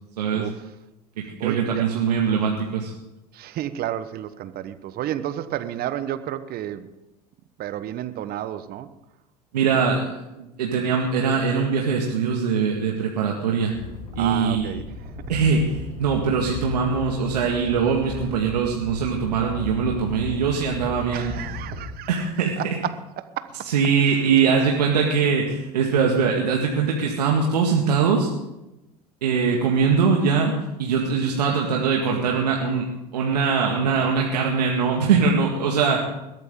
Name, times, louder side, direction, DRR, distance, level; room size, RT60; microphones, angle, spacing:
voice 1, 0.3-0.7 1.4-1.9 3.3-6.9 7.6-8.9 14.2-15.1 21.1-22.3 22.6-23.7, right 12 dB, 50° right, 13 dB, 1.2 m, -31 dB
voice 2, 1.4-2.9 9.5-13.7 14.2-14.7 15.3-21.3 22.1-22.6 23.7-28.3 29.2-36.0, right 5 dB, 80° right, 0 dB, 2.0 m, -22 dB
Animal, 13.7-21.9, left 2 dB, 85° left, 3.6 m, -36 dB
21.0 x 13.5 x 3.8 m, 0.93 s
hypercardioid pair, 75°, 21 cm